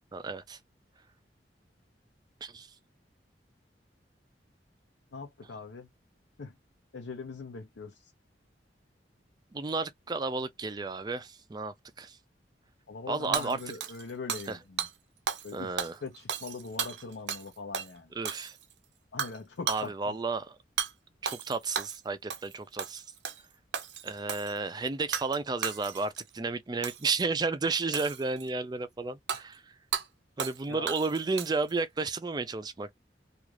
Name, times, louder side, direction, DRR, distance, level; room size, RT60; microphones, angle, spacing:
voice 1, 0.1-0.6 2.4-2.7 9.5-12.2 13.1-13.6 14.5-14.6 15.5-15.9 18.2-18.6 19.7-20.6 21.2-23.0 24.0-29.6 30.4-32.9, right 3 dB, 25° right, 0.4 m, -32 dB
voice 2, 5.1-5.9 6.4-6.5 6.9-8.1 12.9-14.9 15.4-15.7 16.0-18.1 19.1-20.2 30.7-30.9, left 4 dB, 85° left, 0.5 m, -42 dB
Hammer / Shatter, 13.3-14.5 14.8-14.9 15.3-15.5 15.8-17.5 17.7-17.9 18.3-18.7 19.2-19.4 19.7-19.9 20.8-20.9 21.3-22.0 22.3-22.5 22.8-23.4 23.7-24.5 25.1-25.4 25.6-26.2 26.8-27.1 27.9-28.5 29.3-29.4 29.9-30.1 30.4-30.6 30.9-31.7, right 7 dB, 75° right, 0.5 m, -34 dB
2.4 x 2.4 x 3.0 m
head